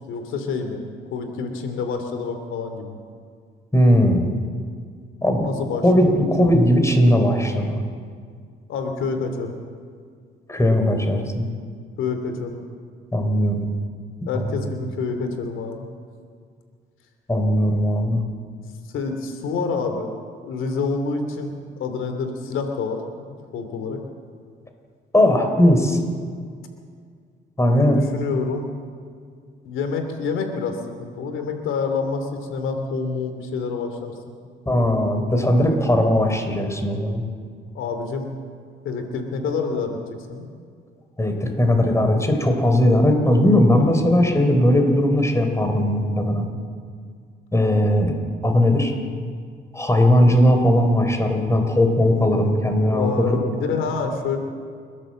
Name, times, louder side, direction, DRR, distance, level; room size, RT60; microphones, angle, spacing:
voice 1, 0.1-0.8 1.1-3.0 5.4-6.1 8.7-9.5 12.0-12.6 14.3-15.8 18.9-20.1 20.4-24.0 27.9-28.7 29.6-34.2 37.7-38.3 38.8-40.0 40.3-40.4 52.8-54.4, left 4 dB, 85° left, 6 dB, 2.8 m, -27 dB
voice 2, 3.7-4.3 5.2-5.5 5.8-7.8 10.5-11.5 13.1-13.7 14.5-14.7 17.3-18.2 25.1-26.0 27.6-28.0 34.7-37.2 41.2-46.5 47.5-48.1 48.4-48.9 49.7-53.3, left 1 dB, 15° left, 4 dB, 3.8 m, -18 dB
29.0 x 12.0 x 7.6 m, 2.1 s
cardioid pair, 90°, 20 cm